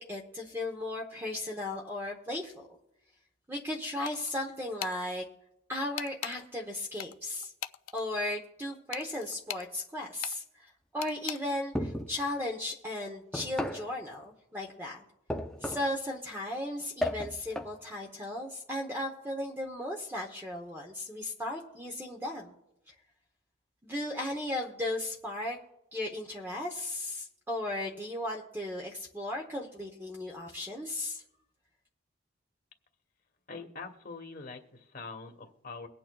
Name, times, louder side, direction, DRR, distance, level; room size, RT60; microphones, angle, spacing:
voice 1, 0.0-2.7 3.5-5.2 5.7-7.5 7.9-10.7 10.9-15.0 15.6-22.5 23.8-25.6 25.9-31.2, left 1 dB, 10° right, 1 dB, 0.8 m, -36 dB
sound 1, 4.1-4.4 4.8-5.0 6.0-6.4 7.0-8.0 8.9-9.7 10.2-10.4 11.0-11.4, left 11 dB, 70° left, 0.3 m, -39 dB
sound 2, 11.7-12.2 13.3-13.9 15.3-16.0 17.0-17.8, left 1 dB, 5° left, 0.5 m, -34 dB
voice 2, 33.5-35.9, left 4 dB, 45° left, 5 dB, 1.1 m, -44 dB
23.0 x 8.6 x 2.3 m, 0.88 s
head